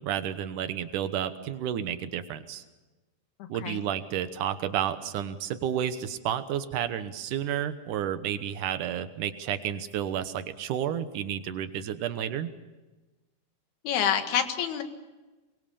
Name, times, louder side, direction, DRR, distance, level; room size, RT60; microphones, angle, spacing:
voice 1, 0.0-2.6 3.5-12.5, right 9 dB, 70° right, 10 dB, 2.1 m, -31 dB
voice 2, 3.4-3.9 13.8-14.8, left 8 dB, 70° left, 7 dB, 3.6 m, -28 dB
23.5 x 23.0 x 7.0 m, 1.2 s
omnidirectional pair, 4.8 m